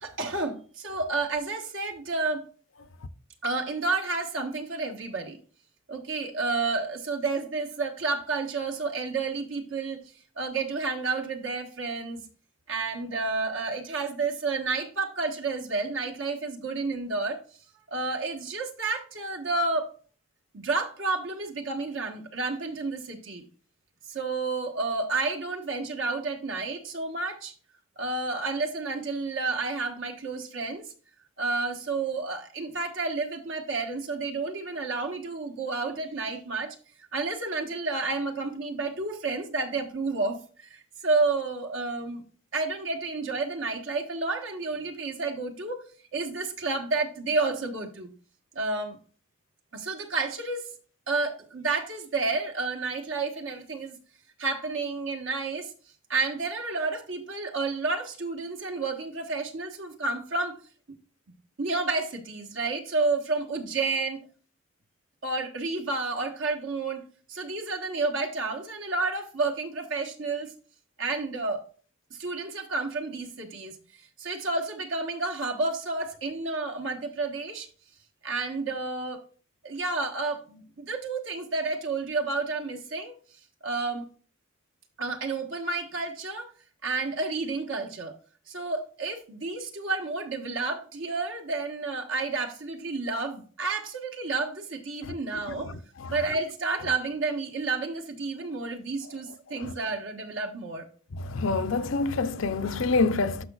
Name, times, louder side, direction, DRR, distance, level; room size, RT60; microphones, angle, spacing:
voice 1, 0.0-2.4 3.4-5.4 5.9-10.0 10.4-12.2 12.7-17.4 17.9-19.9 20.5-23.4 24.1-27.5 28.0-30.9 31.4-36.7 37.1-42.2 42.5-45.8 46.1-48.1 48.5-49.0 49.7-50.6 51.1-54.0 54.4-55.7 56.1-60.6 61.6-64.3 65.2-70.5 71.0-71.6 72.1-73.7 74.2-77.7 78.2-79.2 79.6-83.2 83.6-84.1 85.0-86.5 86.8-88.1 88.5-95.8 96.1-100.8, right 3 dB, 80° right, 1.3 m, -30 dB
voice 2, 101.2-103.4, left 3 dB, 85° left, 0.6 m, -26 dB
12.5 x 5.1 x 2.4 m
head